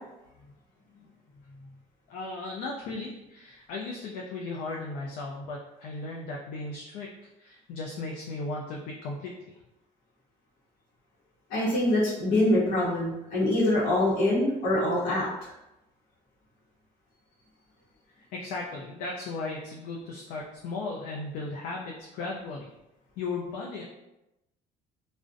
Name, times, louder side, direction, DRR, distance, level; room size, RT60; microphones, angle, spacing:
voice 1, 2.1-7.1 7.4-9.5 18.3-22.7 23.2-23.8, left 3 dB, 70° left, -2 dB, 0.4 m, -36 dB
voice 2, 11.5-15.5, left 1 dB, 90° left, -8 dB, 0.8 m, -24 dB
2.5 x 2.1 x 2.5 m, 0.92 s
cardioid pair, 175°, 14 cm